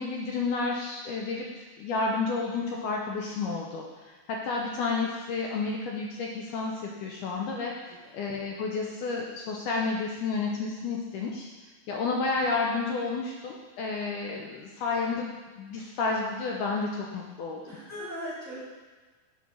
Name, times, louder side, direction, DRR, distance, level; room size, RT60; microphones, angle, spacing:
voice 1, 0.0-11.5 11.9-15.3 15.6-17.6, left 4 dB, 85° left, -1 dB, 1.8 m, -31 dB
voice 2, 7.8-8.1 14.7-14.8 17.6-18.6, equal, 10° right, -9 dB, 1.0 m, -40 dB
7.0 x 4.2 x 6.0 m, 1.3 s
omnidirectional pair, 4.3 m